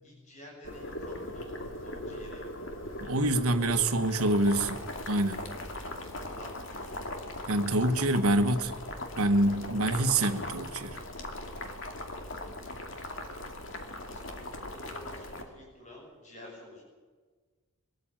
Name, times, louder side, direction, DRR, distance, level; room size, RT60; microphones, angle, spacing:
voice 1, 0.0-2.7 3.6-4.4 5.5-7.3 9.4-9.8 14.0-16.8, left 1 dB, 30° left, -2 dB, 7.1 m, -51 dB
Boiling, 0.6-15.4, left 1 dB, 60° left, 2.5 m, -39 dB
voice 2, 3.0-5.4 7.5-8.7 9.2-11.0, right 1 dB, 85° right, 9 dB, 1.4 m, -26 dB
23.0 x 13.5 x 9.0 m, 1.4 s
head